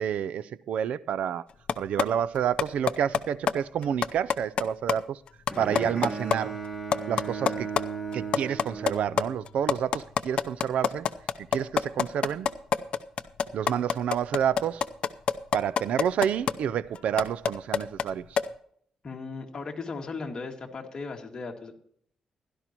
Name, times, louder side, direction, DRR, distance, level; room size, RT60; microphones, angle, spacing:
voice 1, 0.0-1.4 1.8-5.2 5.6-6.6 7.1-7.7 8.1-11.1 11.5-12.5 13.5-14.8 15.5-18.2, right 9 dB, 80° right, 0.4 m, -29 dB
sound 1, 1.7-2.0 2.3-3.2 3.5-3.6 3.8-4.6 4.9-5.0 5.3-6.4 6.6-6.7 6.9-7.8 8.1-16.5 17.0-18.1 18.4-18.5, left 7 dB, 55° left, 0.6 m, -25 dB
Bowed string instrument, 5.5-9.7, right 4 dB, ahead, 2.4 m, -36 dB
voice 2, 19.0-21.8, left 4 dB, 35° left, 2.1 m, -37 dB
16.5 x 12.0 x 3.0 m
cardioid pair, 135°, 2 cm